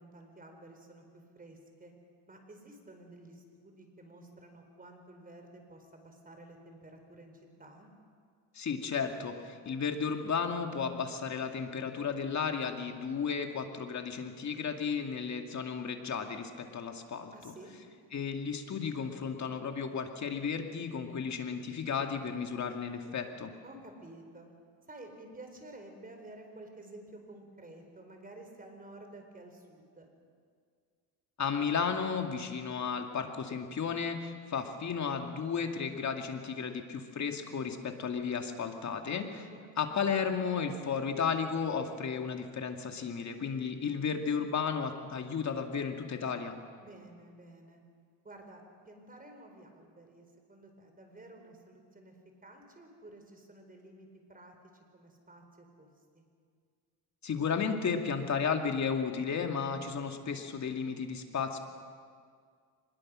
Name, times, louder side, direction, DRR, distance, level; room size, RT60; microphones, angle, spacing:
voice 1, 0.0-1.9 2.3-7.3 7.6-7.9 17.3-17.7 23.6-24.5 24.9-30.1 39.5-40.1 46.8-47.8 48.2-52.2 52.4-54.5 54.9-55.9 56.1-56.2, right 2 dB, 20° right, 4 dB, 4.5 m, -52 dB
voice 2, 8.5-17.3 18.1-23.5 31.4-39.5 39.8-46.6 57.2-61.6, left 6 dB, 40° left, 4 dB, 2.4 m, -33 dB
24.5 x 21.0 x 6.4 m, 2.1 s
cardioid pair, 105°, 41 cm